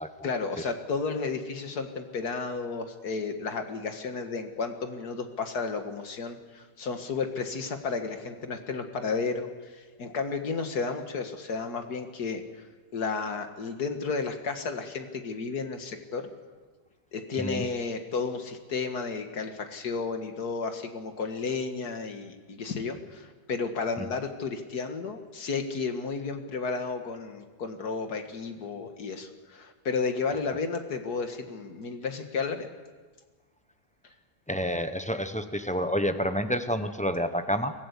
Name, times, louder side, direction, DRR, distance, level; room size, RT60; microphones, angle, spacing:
voice 1, 0.2-12.4 12.9-16.3 17.1-32.7, left 4 dB, 65° left, 6 dB, 2.2 m, -32 dB
voice 2, 34.5-37.7, equal, 10° left, 8 dB, 0.4 m, -29 dB
23.5 x 15.0 x 8.3 m, 1.4 s
omnidirectional pair, 1.8 m